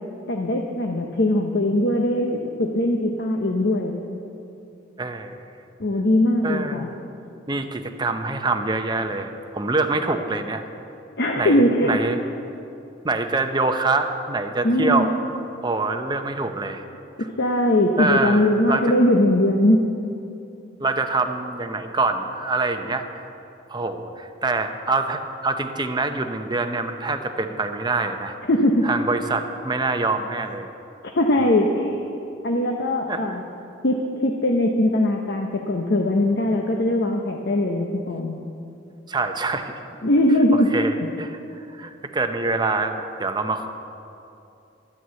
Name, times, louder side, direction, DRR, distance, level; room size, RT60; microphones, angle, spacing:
voice 1, 0.3-4.0 5.8-6.9 11.2-12.0 14.6-15.1 17.2-19.9 28.4-28.9 31.0-32.0 32.4-33.4 33.8-38.4 40.0-40.7, left 1 dB, 60° left, 2 dB, 0.9 m, -20 dB
voice 2, 5.0-5.5 6.4-6.9 7.5-10.6 11.4-12.2 13.0-15.2 15.6-16.8 18.0-18.9 20.8-23.0 23.7-28.3 28.8-30.7 31.4-31.5 33.1-33.4 39.1-39.7 40.5-43.7, right 3 dB, 25° right, 6 dB, 0.7 m, -25 dB
12.5 x 9.2 x 8.1 m, 2.7 s
head